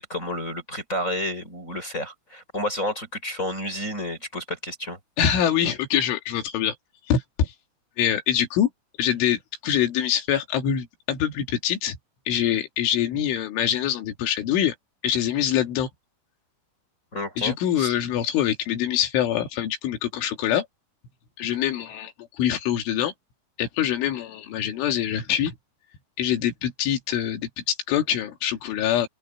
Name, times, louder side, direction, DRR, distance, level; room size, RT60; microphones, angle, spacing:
voice 1, 0.0-5.0 17.1-17.9, left 1 dB, 15° left, 5.2 m, -30 dB
voice 2, 5.2-6.8 7.1-7.5 8.0-8.7 9.0-12.0 12.3-14.7 15.0-15.9 17.4-20.7 21.4-23.1 23.6-25.6 26.2-29.1, left 10 dB, 85° left, 4.9 m, -24 dB
omnidirectional pair, 5.4 m